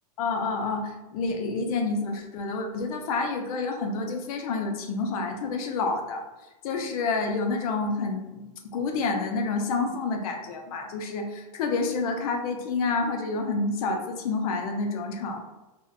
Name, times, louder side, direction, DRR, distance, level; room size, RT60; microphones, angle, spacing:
voice 1, 0.2-6.2 6.6-8.4 8.7-15.4, left 3 dB, 65° left, 4 dB, 0.5 m, -28 dB
2.7 x 2.1 x 2.2 m, 1.1 s
supercardioid pair, 140°, 20 cm